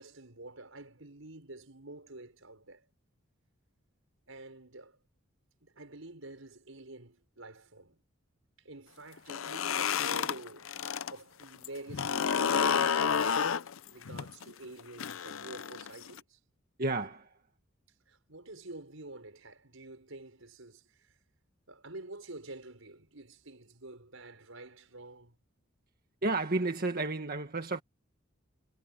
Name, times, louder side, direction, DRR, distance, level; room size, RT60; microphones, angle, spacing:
voice 1, 0.0-2.9 4.3-5.0 5.6-8.0 8.6-10.7 11.1-16.4 18.1-21.2 21.7-25.4, right 2 dB, 80° right, 5.5 m, -48 dB
sound 1, 9.2-11.1 11.4-16.2, left 7 dB, 80° left, 0.6 m, -30 dB
voice 2, 16.8-17.4 26.2-27.8, right 2 dB, 50° right, 1.7 m, -31 dB
head